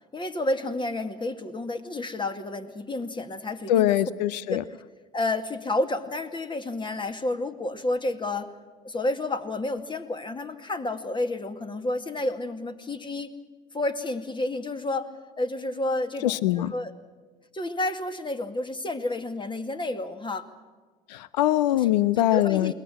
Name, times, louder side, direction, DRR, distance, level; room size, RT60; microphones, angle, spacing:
voice 1, 0.1-4.0 4.5-4.8 5.1-8.5 8.8-13.4 13.7-15.1 15.4-16.9 17.5-20.5 21.8-21.9 22.2-22.7, left 2 dB, 20° left, 8 dB, 2.1 m, -30 dB
voice 2, 3.7-4.6 16.2-16.7 21.1-22.7, left 13 dB, 85° left, 19 dB, 0.6 m, -23 dB
21.5 x 19.5 x 7.6 m, 1.4 s
hypercardioid pair, 70°, 21 cm